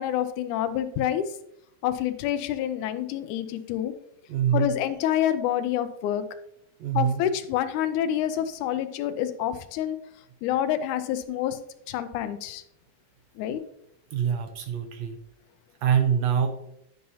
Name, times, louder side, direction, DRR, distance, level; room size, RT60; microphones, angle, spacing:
voice 1, 0.0-1.3 1.8-3.9 4.5-6.3 6.9-10.0 10.4-11.6 11.9-12.6 13.4-13.6, left 10 dB, 90° left, 11 dB, 2.1 m, -27 dB
voice 2, 4.3-4.7 6.8-7.2 14.1-15.2 15.8-16.5, right 8 dB, 75° right, 6 dB, 1.7 m, -24 dB
10.5 x 5.5 x 2.7 m, 0.79 s
omnidirectional pair, 3.4 m